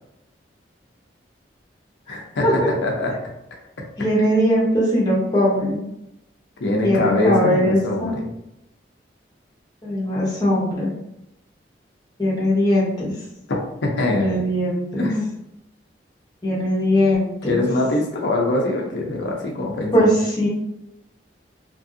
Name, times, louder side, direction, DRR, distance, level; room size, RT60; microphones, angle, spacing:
voice 1, 2.1-2.5 2.8-3.1 6.6-8.2 13.8-14.4 15.0-15.3 17.5-20.1, left 2 dB, 85° left, -1 dB, 0.6 m, -23 dB
voice 2, 4.0-5.8 6.8-8.1 9.8-10.9 12.2-13.1 14.1-15.1 16.4-17.6 19.9-20.1 20.4-20.5, equal, 20° left, -5 dB, 0.9 m, -20 dB
2.9 x 2.6 x 2.6 m, 0.85 s
head